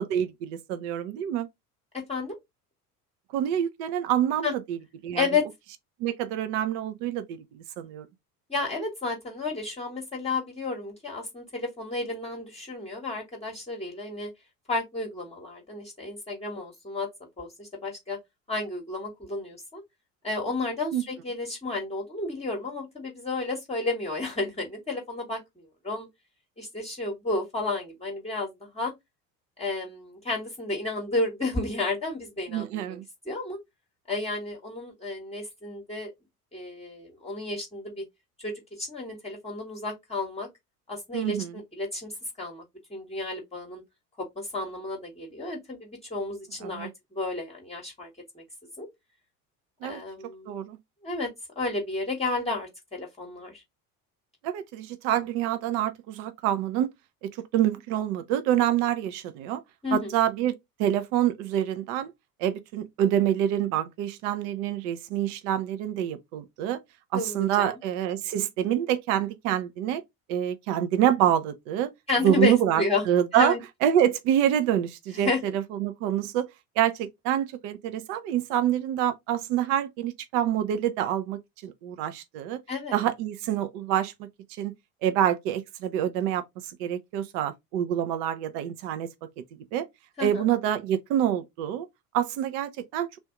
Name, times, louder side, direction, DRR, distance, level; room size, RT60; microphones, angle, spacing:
voice 1, 0.0-1.5 3.3-4.8 5.0-5.3 6.0-8.1 20.9-21.0 32.5-33.0 41.1-41.5 46.6-46.9 49.8-50.0 50.5-50.8 54.4-56.9 57.2-59.6 59.9-62.1 62.4-66.8 67.1-70.0 70.3-71.9 72.2-73.5 73.8-76.5 76.8-82.6 82.9-84.3 84.6-84.7 85.0-86.4 86.8-89.1 89.7-89.9 90.2-91.9 92.1-93.1, right 11 dB, 55° right, 0.6 m, -26 dB
voice 2, 8.5-14.3 14.7-17.1 17.4-18.2 18.5-19.8 20.2-26.1 26.6-28.9 29.6-33.0 33.3-33.6 34.1-36.1 36.5-38.0 38.4-40.5 40.9-42.6 42.9-43.8 44.4-48.1 48.3-48.4 48.8-48.9 49.8-50.6 51.0-51.3 51.6-53.6 59.8-60.1 67.1-67.8 72.1-73.0 73.3-73.6 75.1-75.4 82.7-83.0 90.2-90.4, left 3 dB, 15° left, 1.1 m, -31 dB
3.5 x 2.6 x 3.6 m
figure-of-eight pair, 65°, 46 cm